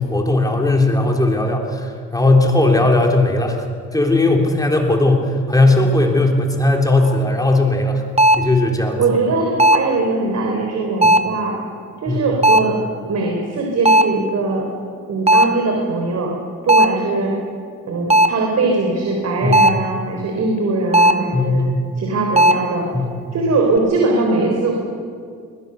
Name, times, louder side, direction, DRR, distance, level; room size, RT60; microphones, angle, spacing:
voice 1, 0.0-3.7 3.9-8.0 8.4-9.0 12.1-12.3 19.4-19.7 21.3-21.9 22.9-23.1, left 2 dB, 10° left, 1 dB, 3.6 m, -17 dB
sound 1, 7.1-7.2 8.2-8.6 9.6-10.0 11.0-11.4 12.4-12.8 13.8-14.2 15.3-15.7 16.7-17.1 18.1-18.5 19.5-19.9 20.9-21.3 22.4-22.7, right 1 dB, 20° right, 1.1 m, -14 dB
voice 2, 9.0-11.6 12.0-12.8 13.1-14.7 15.1-16.3 16.6-17.3 17.9-21.6 22.0-22.9 23.3-24.7, right 3 dB, 60° right, 1 dB, 3.9 m, -20 dB
21.5 x 21.0 x 7.0 m, 2.1 s
cardioid pair, 90°, 30 cm